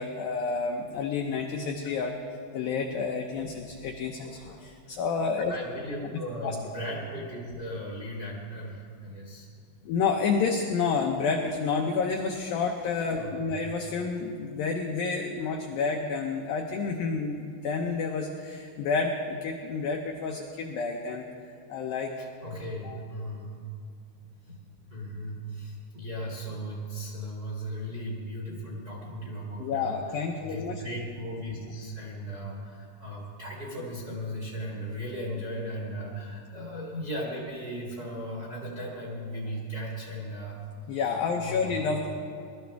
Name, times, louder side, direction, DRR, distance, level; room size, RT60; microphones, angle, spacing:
voice 1, 0.0-2.2 2.5-5.5 6.4-6.6 9.8-22.1 22.8-23.0 29.6-30.8 40.9-42.1, left 5 dB, 85° left, 2 dB, 2.0 m, -29 dB
voice 2, 5.5-9.5 13.2-13.6 22.2-23.6 24.2-40.6 41.4-41.9, equal, 35° right, -3 dB, 1.6 m, -37 dB
21.5 x 13.0 x 3.4 m, 2.4 s
omnidirectional pair, 5.2 m